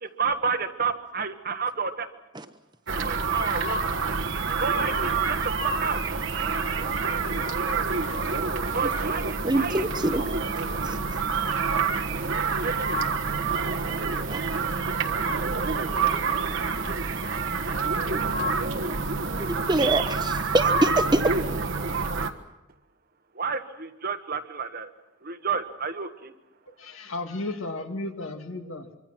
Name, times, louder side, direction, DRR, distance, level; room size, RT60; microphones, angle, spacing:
voice 1, 0.0-2.1 3.0-3.8 4.6-5.4 5.6-6.0 8.7-9.9 12.6-13.0 23.3-24.9 25.2-26.3, right 5 dB, 45° right, 8 dB, 1.3 m, -30 dB
sound 1, 2.9-22.3, right 4 dB, 60° right, 1.4 m, -27 dB
voice 2, 9.4-10.2 10.8-11.0 14.3-14.4 16.1-16.9 18.1-18.2 19.4-21.2, right 1 dB, 20° right, 8 dB, 1.1 m, -26 dB
voice 3, 26.7-29.0, left 2 dB, 65° left, 5 dB, 2.3 m, -34 dB
25.0 x 25.0 x 6.2 m, 1.0 s
head